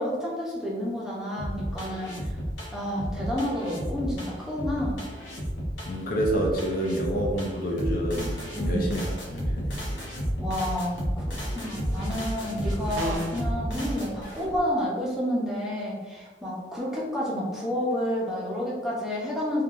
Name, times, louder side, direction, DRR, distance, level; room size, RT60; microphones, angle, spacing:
voice 1, 0.0-2.4 2.7-5.0 8.5-9.0 10.4-19.6, left 1 dB, 5° right, -6 dB, 0.5 m, -30 dB
sound 1, 1.4-14.6, equal, 75° left, 0.7 m, -32 dB
voice 2, 5.9-9.8, right 1 dB, 50° left, -1 dB, 0.4 m, -28 dB
sound 2, 13.0-13.5, right 1 dB, 80° right, 0.5 m, -31 dB
3.1 x 2.2 x 2.4 m, 1.3 s
head